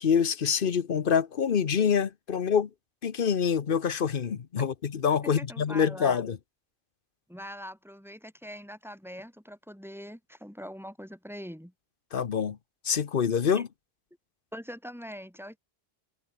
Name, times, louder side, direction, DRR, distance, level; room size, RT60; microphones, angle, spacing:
voice 1, 0.0-2.7 3.0-6.4 12.1-12.6 12.8-13.7, left 7 dB, 60° left, 1.1 m, -26 dB
voice 2, 5.2-6.2 7.3-11.7 13.5-13.6 14.5-15.6, equal, ahead, 5.0 m, -42 dB
omnidirectional pair, 1.0 m